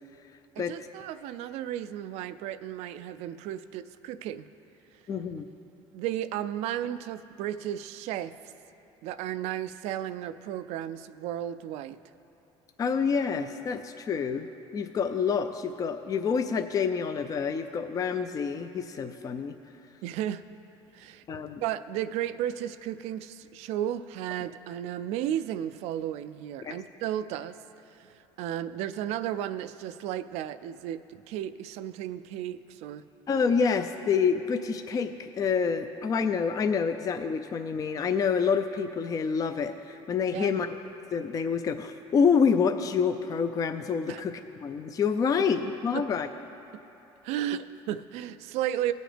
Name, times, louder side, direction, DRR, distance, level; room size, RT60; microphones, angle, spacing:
voice 1, 0.6-4.5 5.9-8.3 9.0-12.0 20.0-20.4 20.9-27.6 27.9-33.0 40.3-40.6 44.1-44.2 45.9-46.0 47.2-48.9, right 11 dB, 80° right, 12 dB, 0.4 m, -34 dB
voice 2, 5.1-5.4 12.8-14.5 14.7-19.5 21.3-21.6 26.6-26.8 33.3-40.8 41.1-46.3, left 6 dB, 35° left, 8 dB, 0.4 m, -27 dB
18.5 x 6.3 x 3.4 m, 3.0 s
cardioid pair, 110°, 11 cm